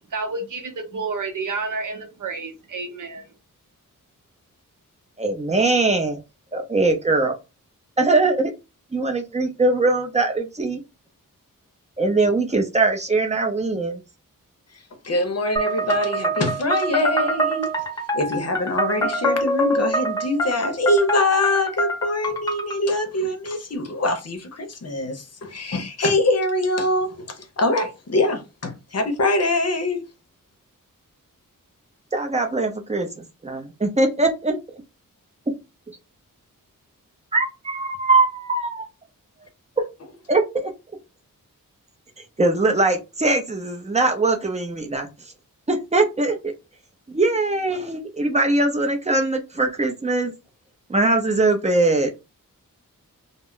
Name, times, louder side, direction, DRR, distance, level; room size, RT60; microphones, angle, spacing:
voice 1, 0.1-3.3, right 4 dB, 65° right, 0.8 m, -30 dB
voice 2, 5.2-6.2 6.5-7.3 8.0-8.5 8.9-10.8 12.0-14.0 32.1-34.6 37.3-38.9 39.8-39.9 40.3-40.7 42.4-45.1 45.7-46.5 47.1-50.3 50.9-52.1, right 2 dB, 20° right, 0.5 m, -21 dB
voice 3, 15.0-17.7 18.1-30.1, left 2 dB, 45° left, 0.7 m, -23 dB
sound 1, 15.6-22.8, right 1 dB, 10° left, 0.8 m, -25 dB
2.2 x 2.0 x 3.7 m
wide cardioid pair, 120°, 34 cm